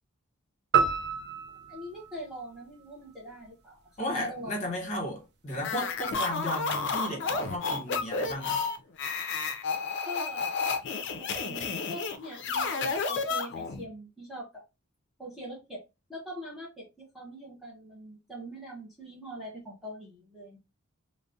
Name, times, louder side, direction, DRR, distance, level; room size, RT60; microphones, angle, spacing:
sound 1, 0.7-3.2, right 6 dB, 50° right, 0.4 m, -29 dB
voice 1, 1.7-4.7 6.2-6.4 10.0-10.6 11.1-14.6 15.2-15.8 16.1-20.6, equal, ahead, 0.6 m, -42 dB
voice 2, 4.0-8.6, left 1 dB, 35° left, 1.0 m, -34 dB
sound 2, 5.6-13.9, left 4 dB, 55° left, 0.4 m, -31 dB
2.4 x 2.0 x 2.5 m
head